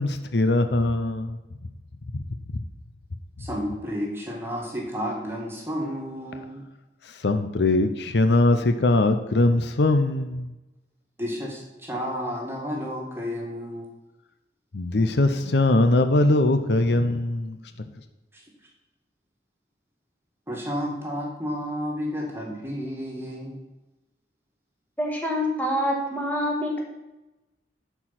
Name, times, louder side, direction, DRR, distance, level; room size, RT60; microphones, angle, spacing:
voice 1, 0.0-1.4 7.2-10.5 14.7-17.6, left 2 dB, 70° left, 8 dB, 0.7 m, -21 dB
voice 2, 3.4-6.6 11.2-13.9 20.5-23.6, equal, 15° right, -1 dB, 1.9 m, -31 dB
voice 3, 25.0-26.8, equal, 10° left, -1 dB, 1.7 m, -26 dB
11.0 x 4.6 x 5.8 m, 1.0 s
head